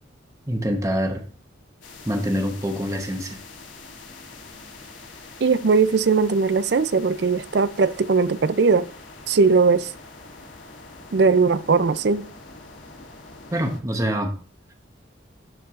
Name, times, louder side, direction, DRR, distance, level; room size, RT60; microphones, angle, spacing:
voice 1, 0.5-1.2 2.0-3.4 13.5-14.3, equal, 15° right, 0.9 m, -25 dB
sound 1, 1.8-13.8, left 3 dB, 90° left, 2.7 m, -44 dB
voice 2, 5.4-8.9 9.3-9.9 11.1-12.3, right 4 dB, 60° right, 0.4 m, -19 dB
12.5 x 4.6 x 2.5 m
head